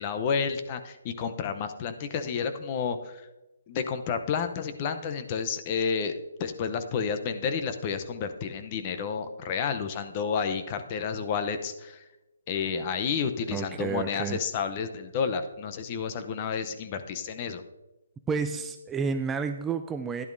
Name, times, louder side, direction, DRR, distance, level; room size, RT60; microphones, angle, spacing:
voice 1, 0.0-3.3 3.7-6.1 6.4-12.1 12.5-17.6, left 6 dB, 30° left, 8 dB, 0.7 m, -30 dB
voice 2, 13.5-14.4 18.3-20.3, right 5 dB, 10° right, 7 dB, 0.3 m, -30 dB
12.0 x 10.5 x 2.6 m, 1.0 s
hypercardioid pair, 155°, 0 cm